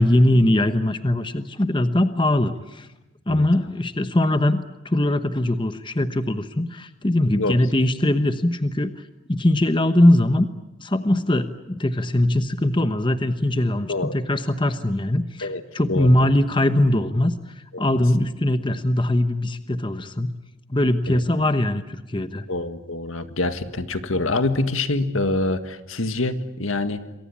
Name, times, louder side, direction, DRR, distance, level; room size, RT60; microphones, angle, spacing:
voice 1, 0.0-2.9 3.3-8.9 9.3-10.5 10.8-20.3 20.7-22.5, left 1 dB, 25° left, 10 dB, 1.0 m, -21 dB
voice 2, 15.9-16.3 17.7-18.0 21.1-21.2 22.5-27.2, left 2 dB, 80° left, 9 dB, 1.8 m, -26 dB
28.0 x 23.0 x 8.6 m, 0.97 s
head